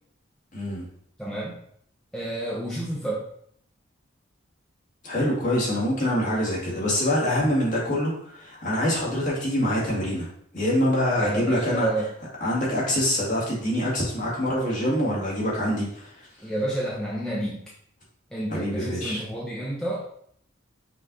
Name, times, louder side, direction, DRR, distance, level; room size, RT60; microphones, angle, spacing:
voice 1, 0.5-0.9 5.0-10.3 10.5-11.9 12.4-16.3 18.5-19.2, left 1 dB, 40° left, -5 dB, 1.7 m, -25 dB
voice 2, 1.2-1.6 2.1-3.2 11.2-12.1 16.4-17.7 18.3-20.0, right 1 dB, 5° left, -5 dB, 0.6 m, -30 dB
5.5 x 2.5 x 3.7 m, 0.68 s
head